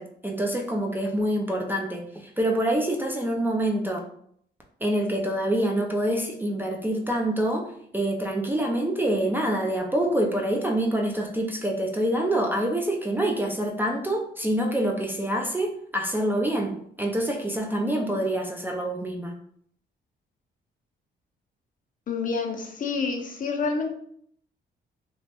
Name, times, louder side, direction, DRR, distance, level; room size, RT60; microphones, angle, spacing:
voice 1, 0.0-4.0 4.8-19.3, right 1 dB, 10° right, 1 dB, 0.4 m, -26 dB
voice 2, 22.1-23.9, left 4 dB, 40° left, 4 dB, 0.6 m, -28 dB
3.1 x 2.1 x 2.9 m, 0.65 s
cardioid pair, 90°, 20 cm